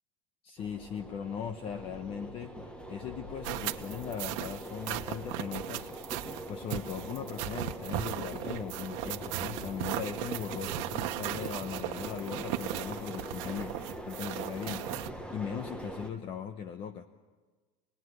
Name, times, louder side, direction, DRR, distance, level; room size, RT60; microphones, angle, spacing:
voice 1, 0.4-2.6 2.9-13.7 14.0-15.0 15.3-17.1, left 8 dB, 35° left, 9 dB, 1.1 m, -39 dB
sound 1, 0.6-16.1, right 1 dB, 5° left, 1.3 m, -43 dB
sound 2, 3.4-15.1, right 15 dB, 55° right, 1.3 m, -37 dB
27.0 x 20.5 x 8.0 m, 1.3 s
supercardioid pair, 155°, 15 cm